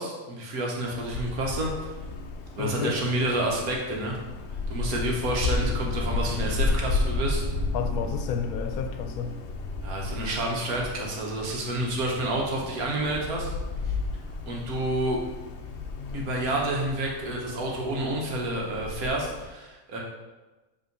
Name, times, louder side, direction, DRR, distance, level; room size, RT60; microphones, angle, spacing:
voice 1, 0.0-1.7 2.6-4.2 4.7-7.4 9.8-13.5 13.9-14.0 14.4-15.2 16.1-20.0, right 1 dB, 90° right, -1 dB, 1.6 m, -29 dB
Wind, 0.8-19.4, left 3 dB, 60° left, 0.8 m, -33 dB
voice 2, 2.6-3.0 7.7-9.4, left 6 dB, 85° left, 7 dB, 1.0 m, -31 dB
5.5 x 3.4 x 5.2 m, 1.2 s
omnidirectional pair, 1.5 m